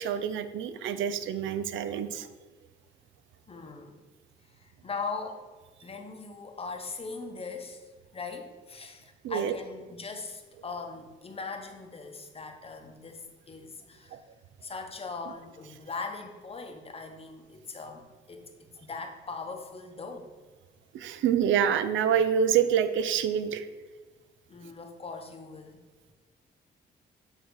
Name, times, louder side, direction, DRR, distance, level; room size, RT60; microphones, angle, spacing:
voice 1, 0.0-2.3 9.2-9.5 14.1-14.2 20.9-23.7, right 8 dB, 75° right, 11 dB, 0.5 m, -27 dB
voice 2, 3.5-4.0 4.4-5.5 5.8-14.2 14.6-20.3 24.5-25.8, left 4 dB, 30° left, 5 dB, 0.9 m, -40 dB
8.1 x 2.8 x 4.7 m, 1.4 s
cardioid pair, 90°, 20 cm